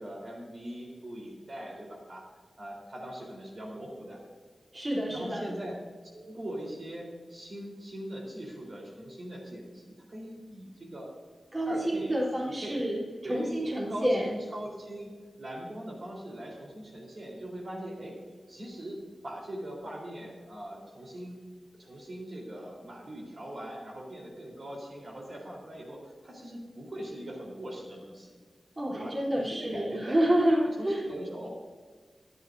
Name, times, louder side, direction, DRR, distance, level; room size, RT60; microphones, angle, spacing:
voice 1, 0.0-2.3 2.6-4.2 5.1-5.8 6.1-11.1 11.7-12.2 12.5-12.9 13.2-13.5 13.9-15.1 15.4-18.2 18.5-21.4 21.8-28.3 28.9-30.2 30.6-31.5, right 1 dB, 50° right, -2 dB, 3.9 m, -41 dB
voice 2, 4.7-5.5 11.5-14.2 28.8-31.0, right 1 dB, 25° right, -6 dB, 3.7 m, -28 dB
26.0 x 10.0 x 2.7 m, 1.5 s
wide cardioid pair, 115°, 0 cm